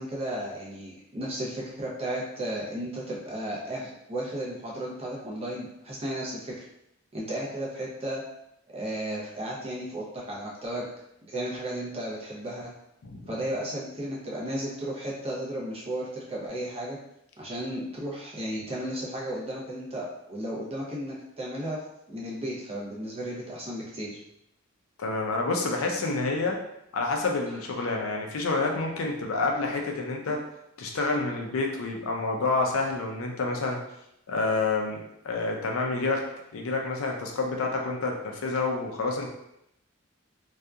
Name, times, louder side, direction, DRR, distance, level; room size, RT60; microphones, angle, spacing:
voice 1, 0.0-6.6 7.1-8.2 8.7-10.9 11.3-12.7 13.3-17.0 17.4-21.8 22.1-24.2 27.5-27.6, right 1 dB, 30° right, -5 dB, 0.7 m, -34 dB
voice 2, 25.0-26.6 26.9-30.4 30.8-33.8 34.3-35.0 35.2-36.2 36.5-39.3, left 3 dB, 85° left, 1 dB, 0.5 m, -28 dB
2.7 x 2.3 x 2.3 m, 0.81 s
head